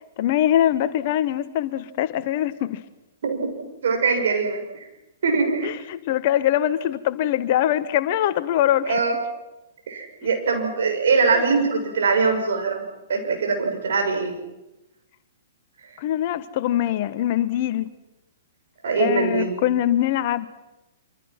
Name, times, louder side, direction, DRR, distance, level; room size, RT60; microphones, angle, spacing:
voice 1, 0.2-2.8 5.6-8.9 16.0-17.9 19.0-20.5, left 12 dB, 45° left, 1.4 m, -23 dB
voice 2, 3.8-4.6 5.2-5.7 8.8-9.2 9.9-12.8 13.1-14.4 18.8-19.6, right 4 dB, 65° right, 6.6 m, -22 dB
26.0 x 26.0 x 6.0 m
figure-of-eight pair, 110°, 0 cm